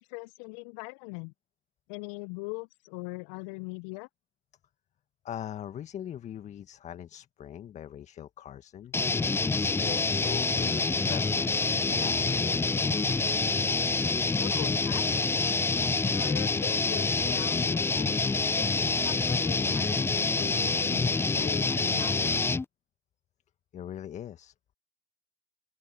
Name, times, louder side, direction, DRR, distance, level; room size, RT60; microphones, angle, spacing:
voice 1, 0.0-1.3 1.9-4.1 14.4-15.3 16.1-18.2 18.5-22.6, left 30 dB, 65° left, 0.9 m, -41 dB
voice 2, 5.2-9.0 9.6-11.6 11.8-13.4 23.7-24.7, left 10 dB, 40° left, 1.8 m, -41 dB
sound 1, 8.9-22.6, left 3 dB, 15° left, 0.7 m, -27 dB
open air
hypercardioid pair, 70°, 18 cm